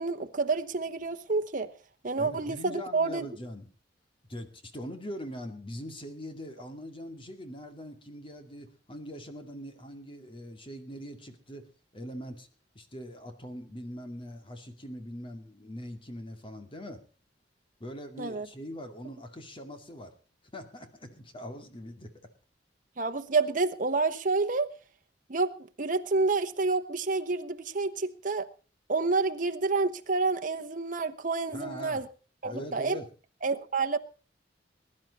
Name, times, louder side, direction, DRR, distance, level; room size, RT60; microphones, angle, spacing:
voice 1, 0.0-1.7 2.0-3.2 18.2-18.5 23.0-24.7 25.3-28.5 28.9-32.0 32.4-33.0 33.4-34.0, right 3 dB, 45° right, 1.1 m, -29 dB
voice 2, 2.2-3.7 4.3-11.7 11.9-12.5 12.7-17.0 17.8-20.1 20.5-22.1 31.5-32.1 32.4-33.1, equal, 30° left, 2.2 m, -42 dB
21.5 x 11.0 x 4.1 m
head